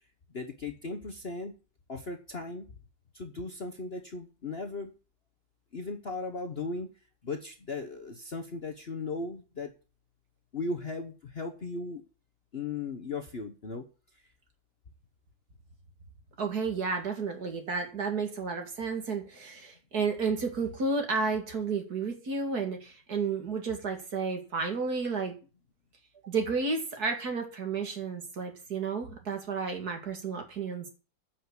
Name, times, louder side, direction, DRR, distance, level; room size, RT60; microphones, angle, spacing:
voice 1, 0.3-1.5 1.9-2.7 3.1-4.9 5.7-6.9 7.2-9.7 10.5-12.0 12.5-13.9, left 3 dB, 40° left, 4 dB, 1.1 m, -37 dB
voice 2, 16.4-25.4 26.2-30.9, right 4 dB, 55° right, 4 dB, 2.6 m, -32 dB
10.0 x 6.0 x 8.2 m, 0.35 s
omnidirectional pair, 2.0 m